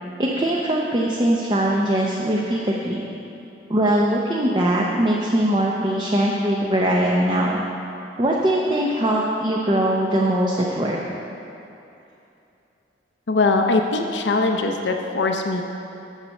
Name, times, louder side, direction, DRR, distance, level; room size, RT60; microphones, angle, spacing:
voice 1, 0.2-3.0 3.7-7.6 8.2-11.0, right 1 dB, 25° right, -2 dB, 0.6 m, -21 dB
voice 2, 13.3-15.6, left 3 dB, 80° left, 3 dB, 0.6 m, -21 dB
7.3 x 6.9 x 5.3 m, 2.8 s
head